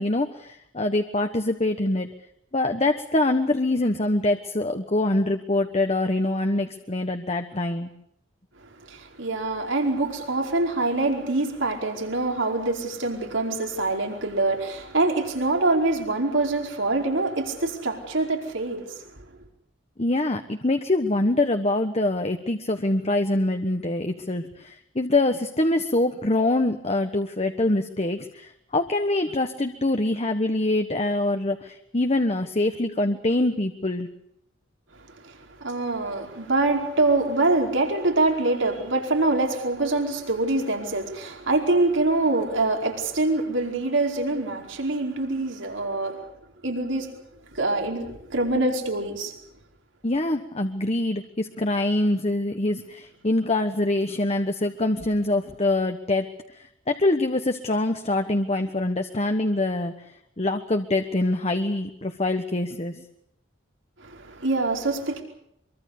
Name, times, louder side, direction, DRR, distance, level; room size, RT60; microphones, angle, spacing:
voice 1, 0.0-2.1 2.5-7.9 20.0-34.1 50.0-56.3 56.6-59.9 60.4-63.0, left 2 dB, 30° left, 1.3 m, -24 dB
voice 2, 8.9-19.0 35.2-46.2 46.6-47.1 47.5-49.3 64.0-65.2, right 2 dB, 75° right, 4.9 m, -25 dB
24.5 x 24.0 x 6.7 m
head